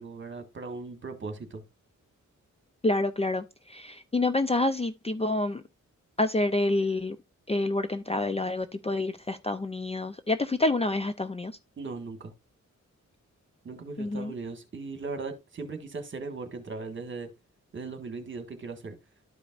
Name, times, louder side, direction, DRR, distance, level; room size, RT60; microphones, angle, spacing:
voice 1, 0.0-1.6 11.8-12.3 13.6-17.3 17.7-19.0, right 4 dB, 40° right, 1.6 m, -38 dB
voice 2, 2.8-5.6 6.2-7.2 7.5-11.6 14.0-14.3, left 2 dB, 20° left, 0.4 m, -28 dB
12.5 x 5.2 x 2.4 m
wide cardioid pair, 145°, 30 cm